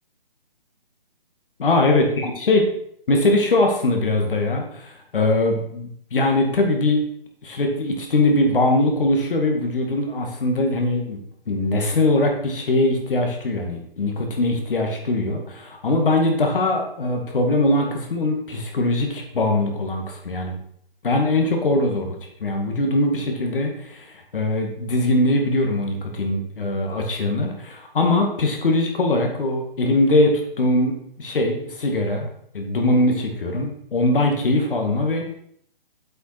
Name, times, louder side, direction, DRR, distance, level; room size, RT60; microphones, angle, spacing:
voice 1, 1.6-2.6 3.1-7.1 7.4-11.2 11.5-20.5 21.0-22.1 22.4-24.1 24.3-32.3 32.5-35.3, left 2 dB, 65° left, 2 dB, 2.1 m, -21 dB
7.6 x 5.7 x 4.3 m, 0.66 s
hypercardioid pair, 160°, 29 cm